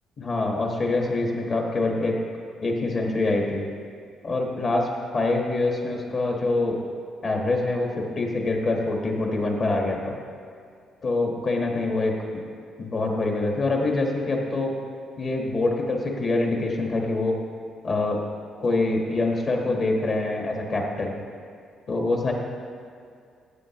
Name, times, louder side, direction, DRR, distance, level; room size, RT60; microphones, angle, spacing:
voice 1, 0.2-2.2 2.6-3.7 4.2-4.9 5.1-6.8 7.2-10.2 11.0-12.2 12.8-14.8 15.2-17.4 17.8-18.2 18.6-21.2 21.9-22.3, left 2 dB, 40° left, 0 dB, 1.3 m, -25 dB
13.5 x 9.0 x 3.0 m, 2.3 s
cardioid pair, 155°, 0 cm